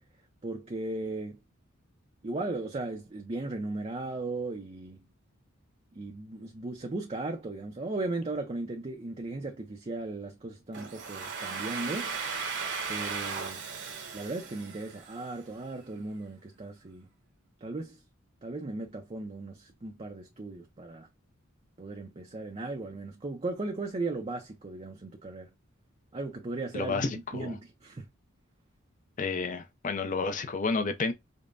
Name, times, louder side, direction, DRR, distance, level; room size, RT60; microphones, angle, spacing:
voice 1, 0.4-1.4 2.2-5.1 6.0-12.2 12.9-13.6 14.1-17.1 17.6-18.0 18.4-21.1 21.8-25.5 26.1-28.1, right 2 dB, 30° right, 0.6 m, -37 dB
Domestic sounds home sounds, 10.7-15.5, right 5 dB, 60° right, 1.1 m, -36 dB
voice 2, 26.7-27.6 29.2-31.1, left 4 dB, 40° left, 0.5 m, -31 dB
5.2 x 2.1 x 2.4 m
head